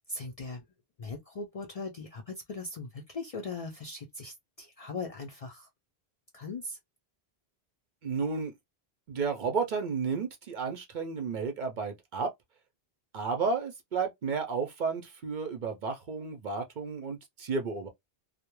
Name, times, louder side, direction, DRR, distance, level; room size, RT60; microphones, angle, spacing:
voice 1, 0.1-0.7 1.0-5.7 6.3-6.8, left 3 dB, 50° left, 0.4 m, -39 dB
voice 2, 8.0-8.5 9.1-12.3 13.1-17.9, right 5 dB, 55° right, 0.6 m, -32 dB
2.2 x 2.1 x 3.0 m
omnidirectional pair, 1.1 m